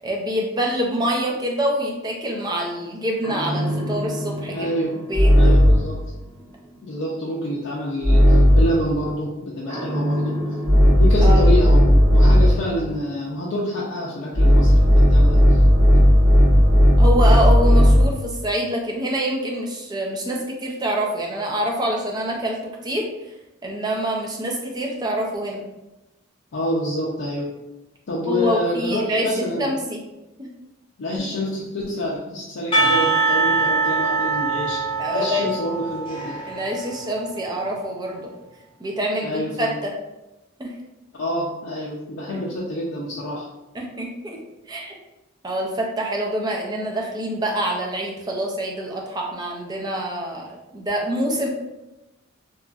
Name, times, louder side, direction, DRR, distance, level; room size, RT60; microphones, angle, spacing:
voice 1, 0.0-4.7 5.1-5.6 11.2-11.4 17.0-22.6 22.8-23.1 23.6-25.6 28.3-30.0 30.4-30.5 35.0-35.5 36.5-38.3 38.8-39.9 40.6-40.7 43.7-44.4 44.7-44.9 45.4-50.5 50.7-51.5, right 1 dB, 20° right, 0 dB, 0.4 m, -26 dB
sound 1, 3.2-6.0 8.0-8.8 9.7-12.7 14.3-18.2, equal, 75° right, 0.8 m, -15 dB
voice 2, 4.5-5.0 5.4-6.0 6.8-10.4 11.0-15.6 26.5-27.6 28.1-29.7 31.0-36.4 39.2-39.8 41.2-43.5, left 1 dB, 75° left, -5 dB, 0.5 m, -27 dB
Percussion / Church bell, 32.7-37.7, right 3 dB, 25° left, 0.6 m, -23 dB
2.9 x 2.4 x 2.3 m, 0.97 s
head